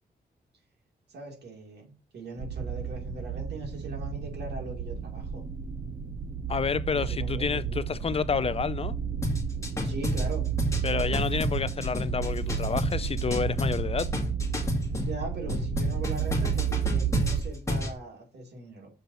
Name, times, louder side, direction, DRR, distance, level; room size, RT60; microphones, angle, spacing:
voice 1, 1.1-5.4 6.9-8.2 9.8-10.5 14.9-18.9, right 3 dB, 75° right, 2.5 m, -40 dB
sound 1, 2.4-17.4, right 7 dB, 45° right, 1.0 m, -32 dB
voice 2, 6.5-9.0 10.8-14.1, left 6 dB, 35° left, 0.4 m, -29 dB
sound 2, 9.2-15.1 15.5-17.9, left 1 dB, 15° left, 2.1 m, -30 dB
6.8 x 3.9 x 6.3 m
wide cardioid pair, 125°, 17 cm